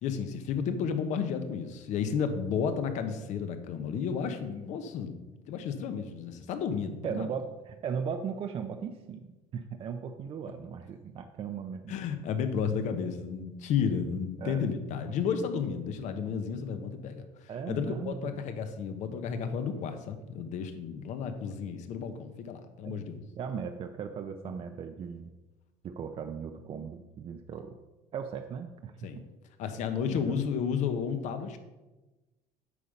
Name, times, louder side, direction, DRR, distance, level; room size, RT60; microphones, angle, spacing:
voice 1, 0.0-5.2 5.5-7.3 11.9-17.2 17.7-23.2 29.0-29.2 29.6-31.6, left 6 dB, 60° left, 8 dB, 1.1 m, -32 dB
voice 2, 7.0-12.0 12.6-12.7 14.4-14.6 17.5-18.4 22.8-25.3 25.8-27.7 28.1-29.2 30.1-30.4, right 6 dB, 40° right, 6 dB, 0.6 m, -38 dB
8.3 x 5.6 x 5.2 m, 1.1 s
supercardioid pair, 100°, 14 cm